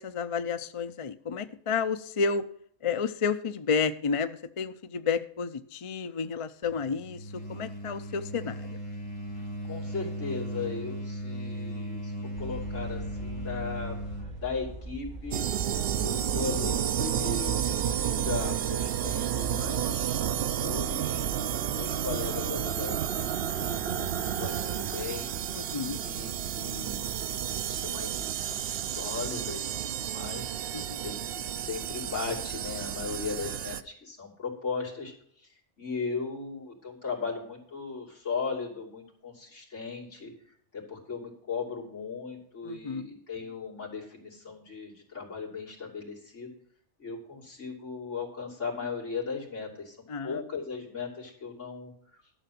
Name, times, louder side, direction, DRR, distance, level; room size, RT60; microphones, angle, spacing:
voice 1, 0.0-2.5 2.8-8.8 25.5-26.0 30.7-31.0 42.6-43.2 50.1-50.4, left 5 dB, 45° left, 10 dB, 0.4 m, -31 dB
sound 1, 6.6-14.4, equal, 25° left, 2.0 m, -37 dB
voice 2, 9.3-14.0 14.3-15.4 16.0-21.3 21.8-23.3 23.6-25.3 26.0-29.7 30.0-30.5 31.0-40.3 40.7-46.5 47.0-50.0 50.2-51.9, left 5 dB, 65° left, -2 dB, 3.2 m, -37 dB
sound 2, 12.4-20.2, right 2 dB, 35° right, 2.0 m, -42 dB
sound 3, 15.3-33.8, right 9 dB, 60° right, 0.7 m, -31 dB
12.0 x 6.9 x 5.8 m, 0.64 s
omnidirectional pair, 1.3 m